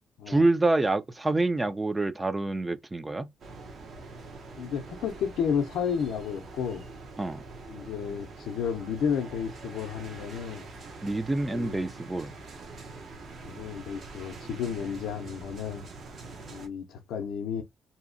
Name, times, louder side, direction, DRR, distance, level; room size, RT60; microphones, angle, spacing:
voice 1, 0.3-3.3 7.2-7.4 11.0-12.3, right 2 dB, 20° right, 0.3 m, -27 dB
sound 1, 3.4-16.7, right 3 dB, 55° right, 0.7 m, -44 dB
voice 2, 4.6-6.9 7.7-10.7 11.3-11.8 13.4-15.9 16.5-17.6, left 7 dB, 80° left, 0.5 m, -32 dB
2.7 x 2.0 x 2.5 m
cardioid pair, 90°, 0 cm